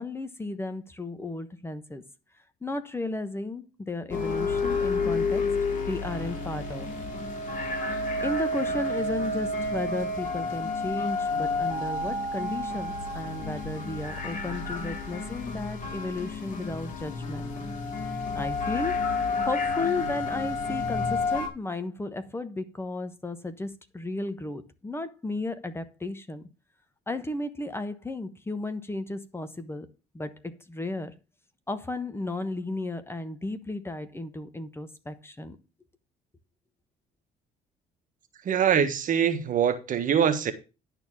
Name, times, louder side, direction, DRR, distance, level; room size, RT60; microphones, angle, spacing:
voice 1, 0.0-2.0 2.6-5.4 5.9-7.1 8.2-17.5 18.3-26.4 27.1-29.9 30.1-31.1 31.7-35.6, left 2 dB, 15° left, 1.2 m, -34 dB
sound 1, 4.1-21.5, left 3 dB, 50° left, 4.1 m, -30 dB
voice 2, 38.4-40.5, right 8 dB, 50° right, 1.5 m, -23 dB
11.0 x 4.4 x 7.2 m
cardioid pair, 110°, 17 cm